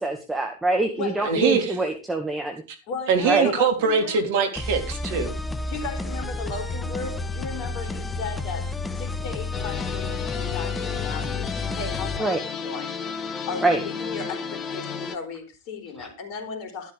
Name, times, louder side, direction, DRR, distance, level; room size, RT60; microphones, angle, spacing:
voice 1, 0.0-2.6 3.2-3.5 12.2-12.4 13.6-13.8 16.0-16.1, right 2 dB, 10° right, 1.9 m, -25 dB
voice 2, 1.2-1.8 3.1-5.3, right 5 dB, 50° right, 3.5 m, -22 dB
voice 3, 2.9-4.2 5.7-16.9, left 4 dB, 40° left, 4.3 m, -36 dB
sound 1, 4.6-12.2, left 3 dB, 10° left, 1.1 m, -31 dB
sound 2, 9.5-15.2, left 6 dB, 25° left, 1.6 m, -33 dB
13.0 x 12.5 x 3.6 m
figure-of-eight pair, 90°, 0 cm